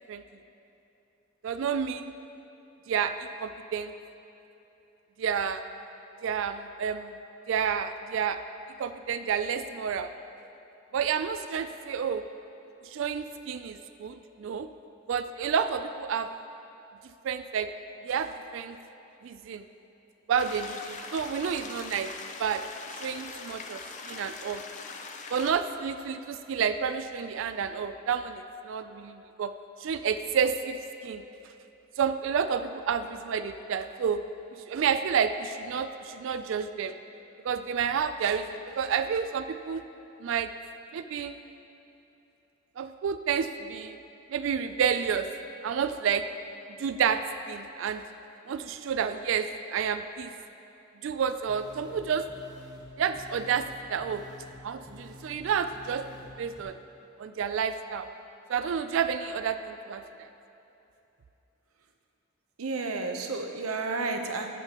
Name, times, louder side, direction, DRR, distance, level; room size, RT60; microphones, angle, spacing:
voice 1, 1.4-2.1 2.9-3.9 5.2-5.6 6.2-7.2 7.5-8.4 8.8-10.1 10.9-12.2 12.8-14.7 15.1-16.3 17.2-17.7 18.0-18.8 19.2-19.6 20.3-22.1 22.4-22.6 22.9-23.8 24.1-24.6 25.3-29.5 29.8-30.8 31.0-31.2 32.0-34.2 34.6-36.9 37.4-39.8 40.2-40.5 40.9-41.4 42.8-44.0 44.3-45.3 45.6-46.3 46.8-47.2 47.5-48.0 48.5-50.3 51.0-52.2 53.0-54.2 54.6-56.0 56.4-56.8 57.2-58.1 58.5-60.3, right 7 dB, 60° right, 10 dB, 0.3 m, -30 dB
sound 1, 20.4-25.5, left 4 dB, 35° left, 0.5 m, -42 dB
sound 2, 51.5-56.6, left 2 dB, 20° right, 0.8 m, -49 dB
voice 2, 62.6-64.5, right 3 dB, 85° right, 5 dB, 0.7 m, -31 dB
12.0 x 7.8 x 2.9 m, 3.0 s
head